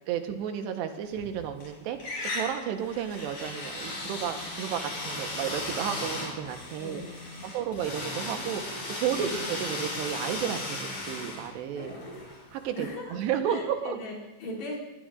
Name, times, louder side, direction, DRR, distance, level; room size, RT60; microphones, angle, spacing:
voice 1, 0.1-2.0 2.3-7.0 7.4-11.9 12.5-14.0, right 9 dB, 80° right, 6 dB, 3.2 m, -32 dB
sound 1, 1.1-1.7 2.0-12.9, left 2 dB, 40° left, 6.9 m, -36 dB
voice 2, 6.8-7.9 9.1-9.5 12.8-13.2 13.5-14.8, left 1 dB, 75° left, -4 dB, 5.3 m, -40 dB
20.5 x 20.0 x 2.5 m, 1.2 s
omnidirectional pair, 4.9 m